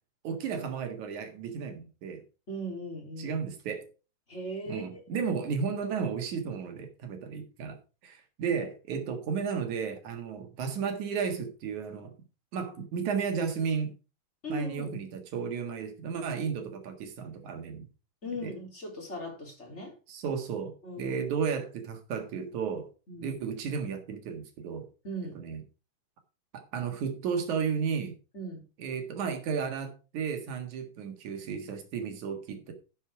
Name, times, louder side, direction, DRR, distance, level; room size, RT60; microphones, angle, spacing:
voice 1, 0.2-2.2 3.2-3.9 4.7-12.1 12.5-13.9 14.5-17.9 18.4-18.5 20.1-22.9 23.2-24.9 25.3-25.6 26.5-28.1 28.8-32.7, right 6 dB, 60° right, 2.9 m, -33 dB
voice 2, 2.5-3.4 4.3-5.3 14.4-14.9 18.2-19.9 20.8-21.2 23.1-23.3 25.0-25.4 28.3-28.6, equal, 20° left, 3.5 m, -38 dB
11.0 x 6.6 x 4.7 m
omnidirectional pair, 4.2 m